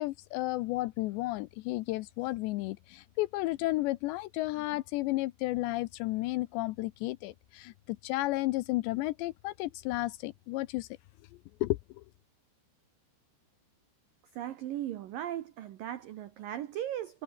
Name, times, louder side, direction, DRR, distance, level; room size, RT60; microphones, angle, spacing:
voice 1, 0.0-10.9 11.6-12.0, left 19 dB, 85° left, 2.5 m, -32 dB
voice 2, 14.3-17.2, right 12 dB, 85° right, 1.9 m, -37 dB
omnidirectional pair, 5.8 m